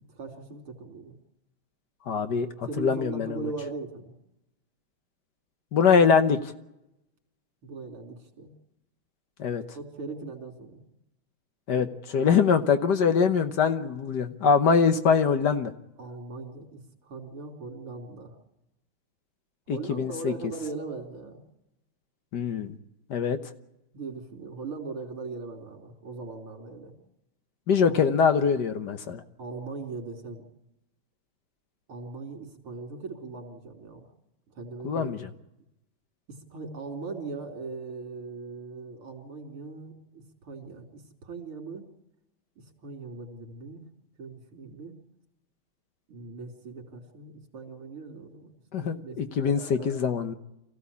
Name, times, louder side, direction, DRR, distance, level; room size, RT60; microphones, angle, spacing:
voice 1, 0.1-1.1 2.7-4.1 7.6-8.5 9.8-10.8 11.7-11.8 12.2-12.3 16.0-18.3 19.7-21.4 23.9-26.9 27.8-28.0 29.4-30.5 31.9-34.1 34.5-35.2 36.3-41.9 42.6-43.8 44.2-44.9 46.1-48.5 48.8-49.9, right 4 dB, 85° right, 3 dB, 4.0 m, -39 dB
voice 2, 2.1-2.5 2.8-3.5 5.7-6.4 9.4-9.6 11.7-11.9 12.1-15.7 19.7-20.3 22.3-22.7 23.1-23.4 27.7-29.2 34.8-35.3 48.7-50.3, left 6 dB, 55° left, 9 dB, 1.5 m, -23 dB
24.0 x 15.5 x 8.4 m, 0.91 s
omnidirectional pair, 2.3 m